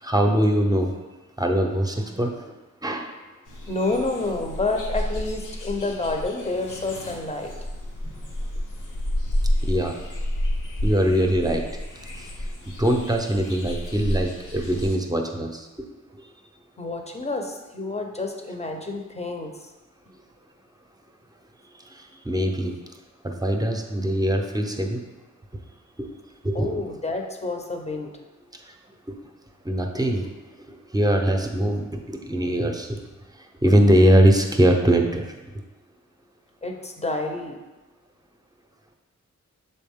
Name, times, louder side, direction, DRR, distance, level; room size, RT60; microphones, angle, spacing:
voice 1, 0.0-0.9 1.4-2.6 2.8-3.1 8.0-8.3 9.6-10.0 10.8-11.6 12.2-12.3 12.8-15.9 16.2-16.3 21.8-22.7 23.2-25.0 26.0-26.1 26.4-26.7 28.6-28.7 29.1-29.2 29.6-33.0 33.3-35.6, right 1 dB, 10° right, 3 dB, 0.7 m, -22 dB
sound 1, 3.5-15.0, left 1 dB, 80° left, 1.0 m, -30 dB
voice 2, 3.7-7.5 16.8-19.7 26.5-28.1 28.4-28.5 36.6-37.6, left 2 dB, 20° left, 3 dB, 0.8 m, -29 dB
6.8 x 4.3 x 3.6 m, 1.2 s
wide cardioid pair, 80°, 30 cm